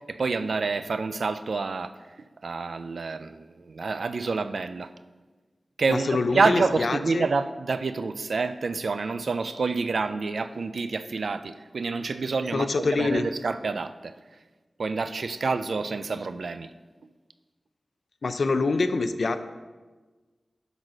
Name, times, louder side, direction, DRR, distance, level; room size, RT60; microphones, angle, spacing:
voice 1, 0.1-1.9 2.4-4.9 5.8-14.1 14.8-16.7, right 4 dB, 85° right, 11 dB, 0.4 m, -28 dB
voice 2, 5.9-7.3 12.5-13.3 18.2-19.4, left 3 dB, 75° left, 10 dB, 0.5 m, -25 dB
11.0 x 4.1 x 6.3 m, 1.3 s
wide cardioid pair, 100°, 0 cm